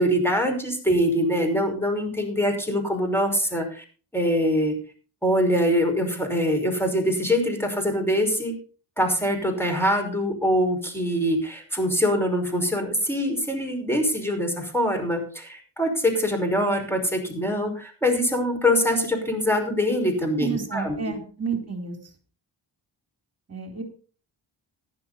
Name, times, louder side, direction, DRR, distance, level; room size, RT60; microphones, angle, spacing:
voice 1, 0.0-3.8 4.1-4.7 5.2-8.5 9.0-21.1, equal, 5° left, 4 dB, 5.6 m, -24 dB
voice 2, 20.4-21.9 23.5-23.8, right 5 dB, 30° right, 4 dB, 3.5 m, -30 dB
15.0 x 11.0 x 4.2 m, 0.38 s
cardioid pair, 65°, 49 cm